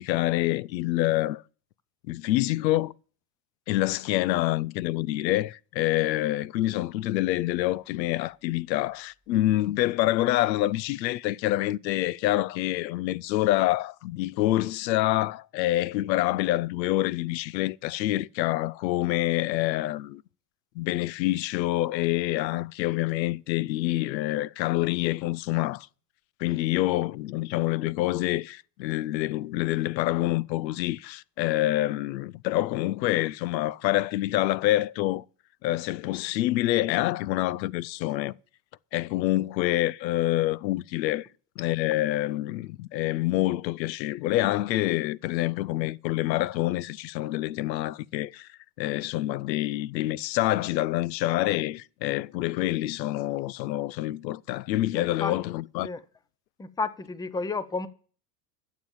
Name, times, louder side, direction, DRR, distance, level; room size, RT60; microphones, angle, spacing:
voice 1, 0.0-1.4 2.1-2.9 3.7-20.2 20.8-25.9 26.4-35.2 35.6-38.3 38.9-41.3 41.6-48.5 48.8-55.9, left 16 dB, 90° left, 0.6 m, -27 dB
voice 2, 54.9-55.4 55.8-56.0 56.6-57.9, left 4 dB, 10° left, 0.6 m, -32 dB
12.5 x 7.4 x 7.2 m
supercardioid pair, 110°, 50 cm